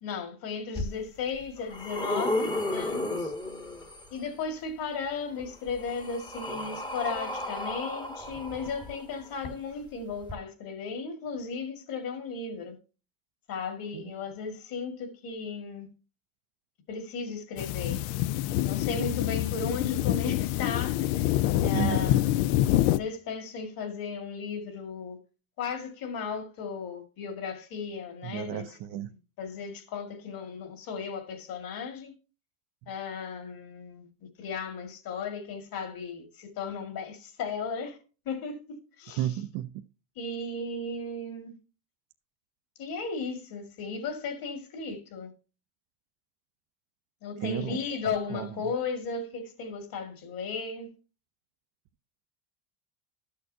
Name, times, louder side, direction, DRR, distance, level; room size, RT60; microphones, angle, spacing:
voice 1, 0.0-3.3 4.1-12.8 13.5-15.9 16.9-18.0 18.6-21.3 21.6-22.5 22.8-25.2 25.6-28.8 29.4-32.1 32.9-34.1 34.4-38.0 38.3-39.3 40.2-41.6 42.8-45.3 47.2-50.9, left 5 dB, 45° left, 2.0 m, -35 dB
sound 1, 0.8-0.9 1.4-4.2 5.4-9.3 10.2-10.3, left 1 dB, 10° left, 1.0 m, -33 dB
sound 2, 17.6-23.0, left 14 dB, 70° left, 0.5 m, -26 dB
voice 2, 21.6-22.1 28.2-29.1 39.2-39.8 47.4-48.6, right 12 dB, 55° right, 0.6 m, -33 dB
12.0 x 6.6 x 2.7 m
cardioid pair, 135°, 47 cm